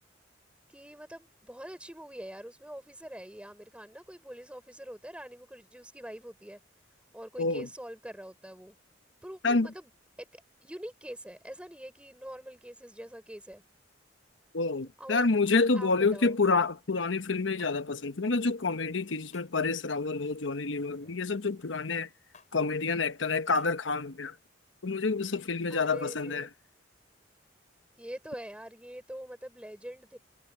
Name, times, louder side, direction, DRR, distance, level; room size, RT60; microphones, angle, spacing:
voice 1, 0.7-6.6 7.1-8.8 9.2-9.9 10.2-13.6 15.0-15.3 15.7-16.4 25.2-26.5 28.0-30.2, equal, 5° right, 5.4 m, -44 dB
voice 2, 14.5-22.1 22.5-24.3 24.8-26.5, left 3 dB, 75° left, 1.0 m, -28 dB
sound 1, 17.6-17.7 19.3-19.6 20.9-21.2 22.3-22.5 23.5-23.7, left 6 dB, 40° left, 6.4 m, -57 dB
head